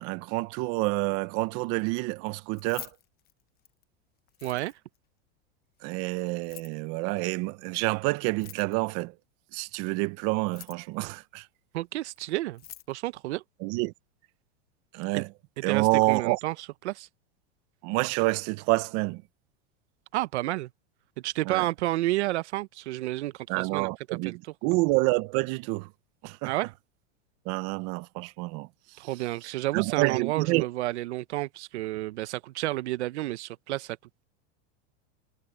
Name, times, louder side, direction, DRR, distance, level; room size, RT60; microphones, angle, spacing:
voice 1, 0.0-2.9 5.8-9.1 9.5-11.5 13.6-13.9 14.9-15.3 15.6-16.4 17.8-19.2 21.4-21.7 23.5-25.9 26.2-26.5 27.5-28.7 29.7-30.7, right 23 dB, 45° right, 1.0 m, -28 dB
Keys jangling, 2.5-3.8 4.3-5.0 6.3-6.8 8.3-9.0 10.3-11.0 12.2-12.3 12.5-12.9, left 13 dB, 25° left, 1.1 m, -46 dB
voice 2, 4.4-4.7 11.7-12.6 12.9-13.4 15.1-15.2 15.7-16.5 16.8-17.1 20.1-20.7 21.2-23.9 24.2-24.4 26.4-26.7 29.0-34.0, right 17 dB, 80° right, 0.9 m, -30 dB
supercardioid pair, 145°, 34 cm